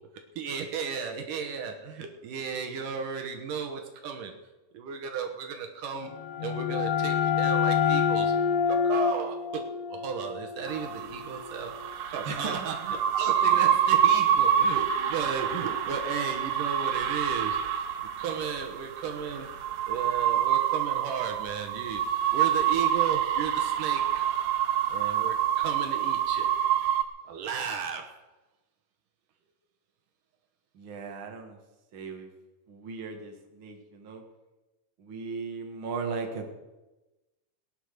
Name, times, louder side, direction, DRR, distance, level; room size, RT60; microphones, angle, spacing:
voice 1, 0.4-4.3 4.7-6.1 6.4-8.3 8.7-11.8 12.1-17.6 18.2-19.5 19.9-22.0 22.3-24.3 24.9-26.5 27.3-28.2, right 6 dB, 75° right, 4 dB, 2.7 m, -35 dB
sound 1, 6.0-11.6, left 7 dB, 70° left, 2.1 m, -27 dB
sound 2, 10.7-27.0, right 10 dB, 90° right, 2.9 m, -27 dB
voice 2, 12.2-12.8 30.7-31.6 31.9-32.3 32.7-34.2 35.0-36.5, right 4 dB, 40° right, 3 dB, 2.4 m, -37 dB
19.0 x 10.0 x 6.6 m, 1.1 s
omnidirectional pair, 3.9 m